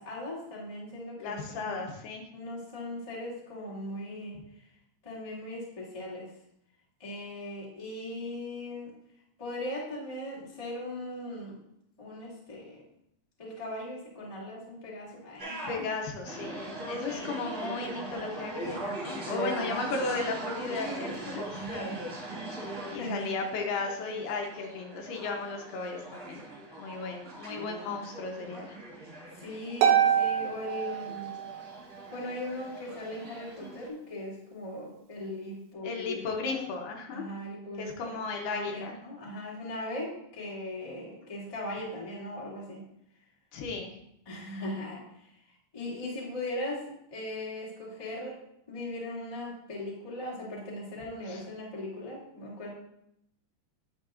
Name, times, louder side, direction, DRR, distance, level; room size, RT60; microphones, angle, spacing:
voice 1, 0.0-1.8 2.3-4.4 5.0-6.3 7.0-8.9 9.4-11.6 12.0-12.8 13.4-15.5 16.6-17.3 19.3-19.8 21.7-22.0 23.0-23.3 27.5-28.0 29.4-31.3 32.1-38.2 38.5-42.8 44.2-45.3 45.7-46.8 47.1-48.4 48.7-52.7, left 1 dB, 15° left, -7 dB, 1.2 m, -39 dB
voice 2, 1.2-2.3 15.5-21.6 22.9-26.4 26.8-28.8 35.8-37.3 37.8-39.0 43.5-43.9 51.3-51.4, left 4 dB, 75° left, 2 dB, 2.8 m, -35 dB
sound 1, 15.4-33.9, right 1 dB, 50° right, 1.0 m, -40 dB
Harp, 29.8-31.7, right 9 dB, 85° right, 2.9 m, -25 dB
10.5 x 7.6 x 2.5 m, 0.77 s
omnidirectional pair, 4.9 m